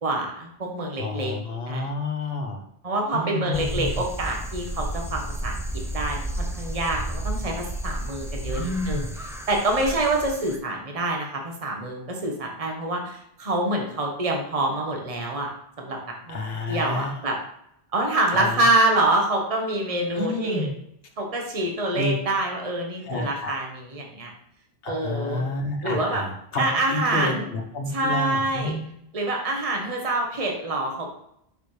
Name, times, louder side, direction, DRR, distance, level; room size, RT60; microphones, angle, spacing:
voice 1, 0.0-1.3 1.7-1.9 2.8-5.6 5.9-9.1 9.5-15.5 15.8-16.0 16.3-17.4 17.9-20.7 21.2-24.3 24.9-25.4 25.8-26.2 26.6-27.5 27.9-28.8 29.1-31.1, right 2 dB, 35° right, 1 dB, 1.2 m, -26 dB
voice 2, 1.0-2.6 3.1-4.0 8.5-9.2 16.3-17.2 18.3-18.6 20.1-20.7 21.9-22.1 23.1-23.6 24.8-28.8, left 2 dB, 65° left, 3 dB, 1.3 m, -29 dB
sound 1, 3.5-10.6, right 1 dB, 5° right, 0.3 m, -32 dB
7.1 x 5.7 x 3.2 m, 0.74 s
omnidirectional pair, 1.1 m